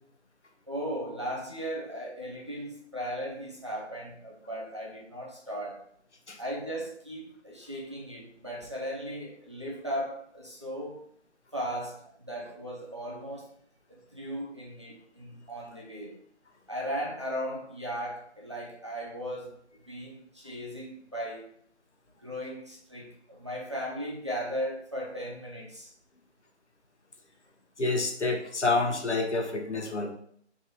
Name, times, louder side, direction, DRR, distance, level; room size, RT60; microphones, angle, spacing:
voice 1, 0.7-5.8 6.4-11.0 11.5-13.5 13.9-16.2 16.7-19.6 19.9-21.5 22.2-25.9, equal, 25° right, -4 dB, 0.6 m, -37 dB
voice 2, 27.8-30.1, left 3 dB, 75° left, 3 dB, 1.0 m, -28 dB
3.5 x 3.1 x 4.0 m, 0.65 s
figure-of-eight pair, 160°, 35 cm